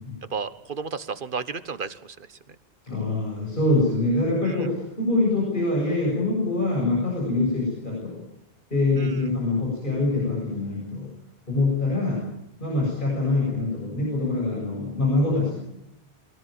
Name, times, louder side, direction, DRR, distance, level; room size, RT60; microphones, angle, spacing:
voice 1, 0.3-2.4 4.5-4.6 9.0-9.2, right 5 dB, 55° right, 13 dB, 1.3 m, -33 dB
voice 2, 2.8-8.2 8.7-11.1 11.5-12.2 12.6-15.6, left 2 dB, 55° left, -4 dB, 7.4 m, -24 dB
23.5 x 17.5 x 9.1 m, 0.82 s
omnidirectional pair, 1.0 m